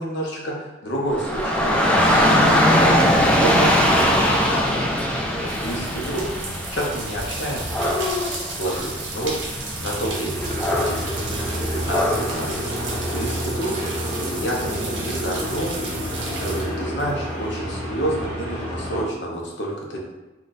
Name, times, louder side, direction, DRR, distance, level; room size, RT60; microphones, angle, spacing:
voice 1, 0.0-2.6 3.0-4.7 5.4-6.4 6.7-10.9 11.7-13.7 14.2-20.0, right 1 dB, 65° left, -2 dB, 0.7 m, -29 dB
Dog / Rain, 1.1-13.3, equal, 5° left, 0.3 m, -21 dB
sound 1, 5.3-17.9, right 3 dB, 65° right, 0.7 m, -35 dB
sound 2, 10.3-19.0, equal, 25° right, 0.8 m, -29 dB
2.5 x 2.2 x 3.8 m, 1.0 s
head